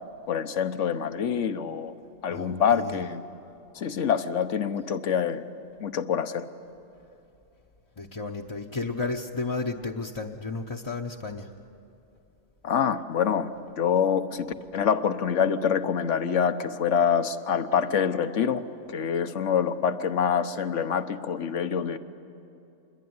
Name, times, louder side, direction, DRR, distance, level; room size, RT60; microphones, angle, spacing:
voice 1, 0.3-1.9 2.2-3.2 3.7-5.4 5.8-6.4 12.6-13.5 13.8-14.5 14.7-18.6 18.9-22.0, left 7 dB, 75° left, 11 dB, 1.3 m, -26 dB
voice 2, 2.3-3.1 8.0-11.5, left 3 dB, 25° left, -1 dB, 0.8 m, -33 dB
26.5 x 22.0 x 9.5 m, 2.8 s
omnidirectional pair, 1.3 m